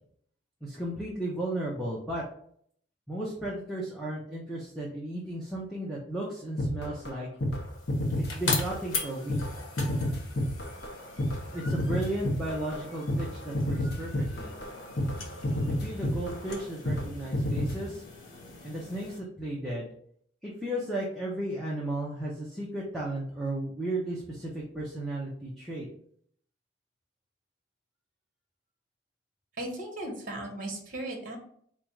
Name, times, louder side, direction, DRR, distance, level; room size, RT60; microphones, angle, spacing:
voice 1, 0.6-2.2 3.1-7.3 8.1-9.6 11.5-14.5 15.6-18.0 18.6-19.9 20.4-25.9, right 1 dB, ahead, -6 dB, 0.7 m, -34 dB
sound 1, 6.6-7.1 7.4-7.6 7.9-9.0 9.3-17.1 17.3-17.8, left 1 dB, 55° left, 0.7 m, -30 dB
sound 2, 7.5-19.2, left 3 dB, 90° left, 1.0 m, -40 dB
voice 2, 29.6-31.4, right 1 dB, 45° right, 1 dB, 1.1 m, -36 dB
4.2 x 2.5 x 4.5 m, 0.63 s
head